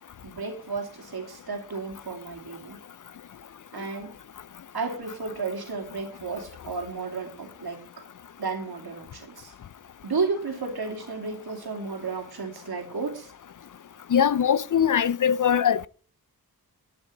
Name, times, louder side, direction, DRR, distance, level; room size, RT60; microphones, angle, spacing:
voice 1, 0.2-2.8 3.7-4.1 4.7-8.0 8.4-9.5 10.0-13.3, right 4 dB, 75° right, 2.6 m, -33 dB
voice 2, 14.1-15.9, left 8 dB, 55° left, 0.5 m, -21 dB
11.5 x 8.2 x 4.0 m
wide cardioid pair, 85°, 38 cm